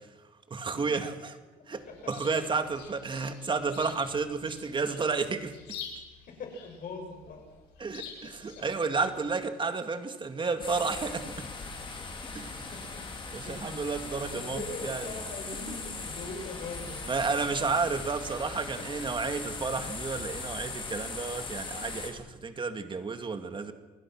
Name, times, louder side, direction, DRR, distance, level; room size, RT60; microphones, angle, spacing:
voice 1, 0.5-1.3 1.7-5.8 7.8-11.5 12.3-12.6 13.3-15.2 15.7-15.8 17.1-23.7, right 4 dB, 30° right, 8 dB, 2.3 m, -32 dB
Chirp tweet, 1.7-9.3, left 7 dB, 90° left, 6.5 m, -48 dB
voice 2, 6.4-7.4 8.5-8.6 12.7-13.0 13.4-13.6 14.3-17.1, left 3 dB, 55° left, 3 dB, 7.1 m, -41 dB
sound 1, 10.6-22.1, left 3 dB, 30° left, 4.7 m, -39 dB
28.0 x 20.0 x 6.2 m, 1.2 s
cardioid pair, 110°, 17 cm